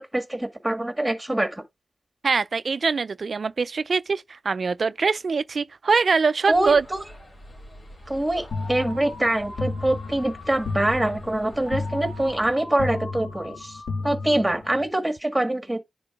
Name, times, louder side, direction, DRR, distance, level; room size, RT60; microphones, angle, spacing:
voice 1, 0.0-1.6 6.5-7.0 8.1-13.8 14.0-15.8, right 1 dB, 10° right, 1.6 m, -24 dB
voice 2, 2.2-6.8, right 4 dB, 60° right, 0.4 m, -23 dB
sound 1, 6.5-12.5, left 1 dB, 55° left, 2.9 m, -45 dB
sound 2, 8.5-14.9, left 3 dB, 90° left, 1.8 m, -33 dB
10.5 x 3.6 x 2.5 m
wide cardioid pair, 110°, 0 cm